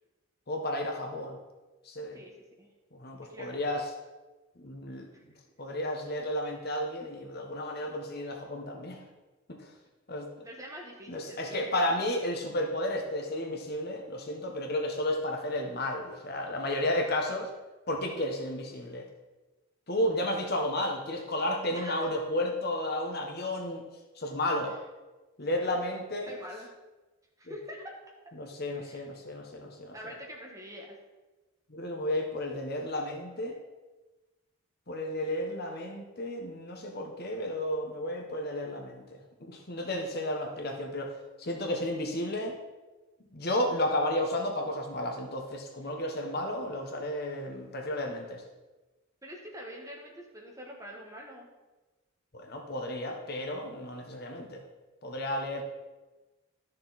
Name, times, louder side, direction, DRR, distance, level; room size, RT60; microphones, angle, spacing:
voice 1, 0.5-1.4 1.8-2.2 2.9-3.9 4.6-5.1 5.6-9.0 9.5-9.6 10.1-10.3 11.1-17.5 17.9-19.1 19.9-23.8 24.2-24.7 25.4-26.3 27.5-27.6 28.4-29.9 31.7-33.6 34.9-41.1 41.4-42.6 43.3-48.4 52.3-54.6 55.0-55.6, left 1 dB, 50° left, 2 dB, 1.2 m, -32 dB
voice 2, 2.1-2.7 3.3-3.6 5.1-5.2 10.4-11.9 21.7-22.1 25.5-25.7 26.3-26.7 27.4-28.0 28.2-28.3 28.8-29.1 29.9-31.0 49.2-51.5, equal, 15° right, -1 dB, 1.5 m, -45 dB
12.0 x 6.6 x 4.2 m, 1.2 s
head